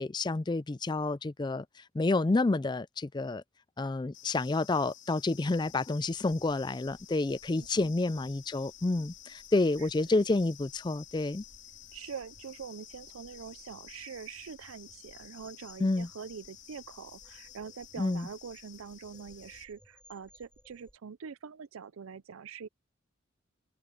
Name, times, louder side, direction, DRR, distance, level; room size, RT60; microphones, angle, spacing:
voice 1, 0.0-1.7 1.9-3.4 3.8-11.4 15.8-16.1 18.0-18.3, left 2 dB, 20° left, 0.3 m, -29 dB
sound 1, 4.1-19.6, left 11 dB, 65° left, 2.6 m, -52 dB
sound 2, 5.3-21.0, equal, 5° left, 6.5 m, -63 dB
voice 2, 7.2-7.9 9.8-10.1 11.9-22.7, right 6 dB, 85° right, 0.5 m, -45 dB
head